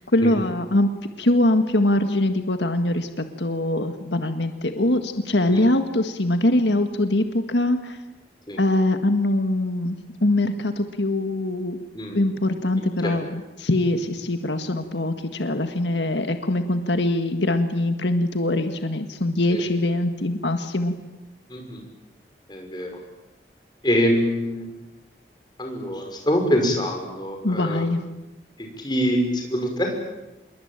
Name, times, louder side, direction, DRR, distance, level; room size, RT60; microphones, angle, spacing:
voice 1, 0.1-0.9 1.2-8.0 8.6-11.8 12.1-20.9 27.4-28.0, left 1 dB, 85° left, 7 dB, 1.8 m, -23 dB
voice 2, 21.5-21.8 22.5-22.9 23.8-24.7 25.6-27.9 28.6-30.0, equal, 25° left, 2 dB, 5.9 m, -24 dB
27.0 x 22.5 x 9.0 m, 1.0 s
head